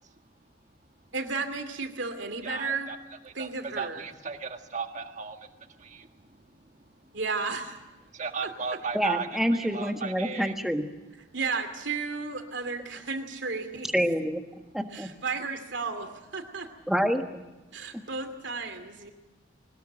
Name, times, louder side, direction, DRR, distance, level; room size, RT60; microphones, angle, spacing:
voice 1, 1.1-2.9 3.3-4.1 7.1-7.8 8.4-8.8 11.1-13.9 14.9-16.7 17.7-19.1, right 4 dB, 70° right, 7 dB, 2.6 m, -33 dB
voice 2, 2.4-3.0 3.4-3.5 3.8-5.4 5.8-6.1 8.1-9.3 9.5-10.5, right 5 dB, 40° right, 6 dB, 1.6 m, -35 dB
voice 3, 8.9-10.9 13.9-14.4 14.7-15.1 16.9-17.4, equal, ahead, 5 dB, 1.5 m, -27 dB
21.0 x 19.5 x 9.0 m, 1.0 s
head